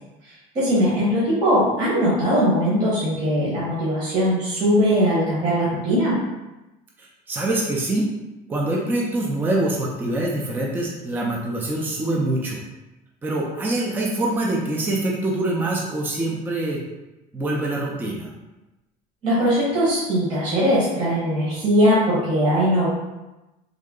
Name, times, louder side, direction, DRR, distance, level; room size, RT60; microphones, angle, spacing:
voice 1, 0.5-6.2 19.2-22.9, equal, 40° right, -9 dB, 1.2 m, -20 dB
voice 2, 7.0-8.1 8.5-12.6 13.2-16.8 17.3-18.3, right 2 dB, 10° right, -3 dB, 0.5 m, -24 dB
3.7 x 2.1 x 3.7 m, 1.0 s
cardioid pair, 140°, 17 cm